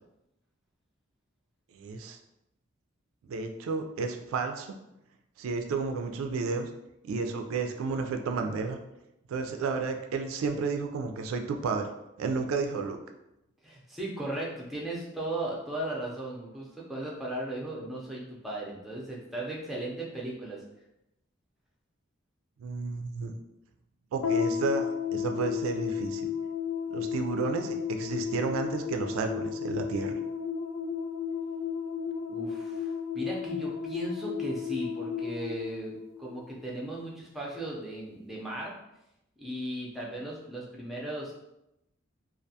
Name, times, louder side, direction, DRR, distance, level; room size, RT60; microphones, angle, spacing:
voice 1, 1.7-2.2 3.3-4.7 5.4-6.7 7.0-8.8 9.3-11.9 12.2-13.0 22.6-23.3 24.1-26.3 26.9-30.1, right 4 dB, 85° right, 6 dB, 0.3 m, -32 dB
voice 2, 13.6-20.6 32.3-35.9 36.2-38.7 39.4-41.3, right 1 dB, ahead, -4 dB, 0.4 m, -36 dB
sound 1, 24.2-36.7, left 7 dB, 85° left, 0.3 m, -33 dB
2.4 x 2.2 x 2.7 m, 0.87 s
head